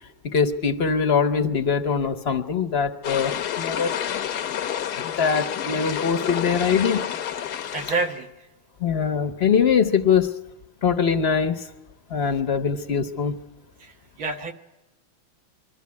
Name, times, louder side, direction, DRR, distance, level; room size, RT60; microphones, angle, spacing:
voice 1, 0.2-4.0 5.0-7.0 8.8-10.3 10.8-11.6 12.1-13.4, left 6 dB, 40° left, 8 dB, 0.9 m, -22 dB
sound 1, 3.0-8.2, left 10 dB, 60° left, 1.2 m, -29 dB
voice 2, 7.7-8.3 13.8-13.9 14.2-14.5, right 3 dB, 70° right, 4 dB, 2.3 m, -27 dB
23.0 x 14.0 x 9.5 m, 1.0 s
omnidirectional pair, 2.3 m